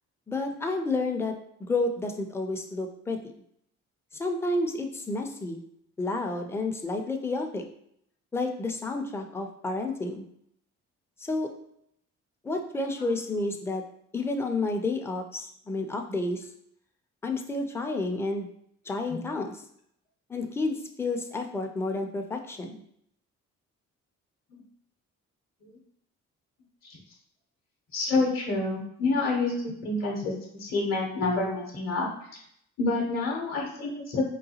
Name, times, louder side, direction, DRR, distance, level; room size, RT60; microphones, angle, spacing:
voice 1, 0.3-1.3 1.6-3.3 4.2-5.6 6.0-7.6 8.3-10.2 11.2-11.5 12.4-13.8 14.1-16.4 17.2-18.5 18.9-19.6 20.3-22.8, left 2 dB, 10° left, 4 dB, 0.4 m, -30 dB
voice 2, 27.9-32.1 32.8-34.3, left 3 dB, 45° left, -2 dB, 0.7 m, -28 dB
3.8 x 2.3 x 2.7 m, 0.70 s
cardioid pair, 90°, 30 cm